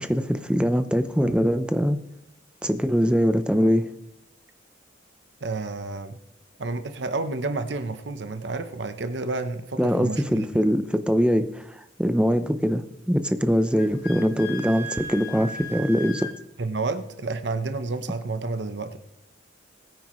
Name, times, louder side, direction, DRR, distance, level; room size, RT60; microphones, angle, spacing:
voice 1, 0.0-2.0 2.6-3.8 9.8-16.3, equal, 5° right, 9 dB, 0.7 m, -22 dB
voice 2, 5.4-6.2 6.6-10.5 16.6-19.0, right 3 dB, 70° right, 9 dB, 0.9 m, -30 dB
Wind instrument woodwind instrument, 13.8-16.3, left 1 dB, 65° left, 1.9 m, -36 dB
20.5 x 9.3 x 3.1 m, 0.81 s
head